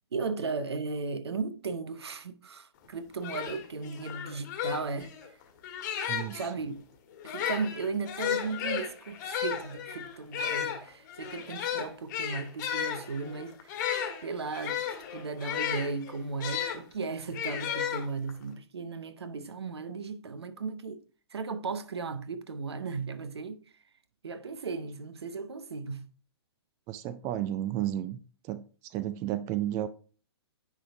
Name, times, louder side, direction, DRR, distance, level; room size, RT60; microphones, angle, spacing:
voice 1, 0.1-5.1 6.3-6.8 7.2-13.8 14.2-14.8 15.1-21.0 21.3-23.6 24.2-26.1, right 4 dB, 70° right, 0.8 m, -36 dB
sound 1, 2.8-2.9 3.2-6.5 7.2-16.8 17.3-18.4, left 9 dB, 45° left, 1.4 m, -34 dB
voice 2, 6.1-6.4 26.9-28.2 28.5-28.6 28.9-29.9, right 12 dB, 20° right, 0.3 m, -32 dB
9.9 x 3.5 x 3.4 m
figure-of-eight pair, 120°, 14 cm